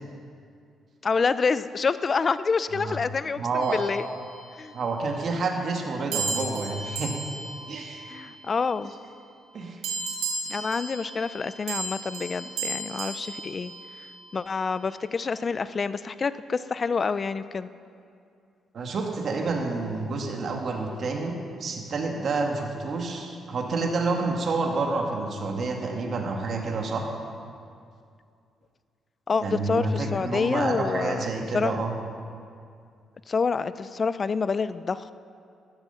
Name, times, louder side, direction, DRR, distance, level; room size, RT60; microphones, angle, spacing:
voice 1, 1.0-4.0 4.6-4.7 8.1-8.9 10.5-13.7 14.3-17.7 29.3-31.3 31.5-31.7 33.3-35.1, left 5 dB, 40° left, 14 dB, 0.5 m, -27 dB
voice 2, 3.4-3.8 4.7-7.2 7.7-8.0 9.5-9.8 18.7-21.3 21.6-27.1 29.4-31.9, right 3 dB, 55° right, 2 dB, 2.1 m, -28 dB
sound 1, 3.6-4.8 6.1-8.8 9.8-14.4, right 3 dB, 90° right, 2.5 m, -35 dB
13.5 x 13.0 x 5.8 m, 2.4 s
cardioid pair, 90°, 0 cm